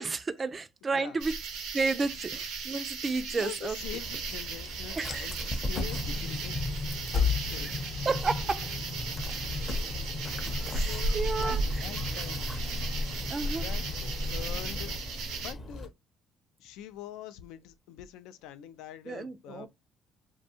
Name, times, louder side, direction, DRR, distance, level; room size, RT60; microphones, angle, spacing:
voice 1, 0.0-1.3 1.7-3.8 5.0-5.3 8.1-8.7 10.7-11.9 13.3-13.7 19.1-19.7, right 4 dB, 30° right, 0.3 m, -32 dB
sound 1, 1.2-15.5, right 3 dB, 85° right, 0.6 m, -35 dB
voice 2, 3.3-7.0 7.5-7.7 9.5-12.8 13.5-14.9 15.3-15.9 16.6-19.7, left 11 dB, 85° left, 0.3 m, -45 dB
Dog, 3.8-15.9, left 1 dB, 30° left, 0.6 m, -40 dB
sound 2, 5.7-15.0, left 5 dB, 60° left, 0.8 m, -35 dB
2.6 x 2.2 x 2.7 m
cardioid pair, 95°, 0 cm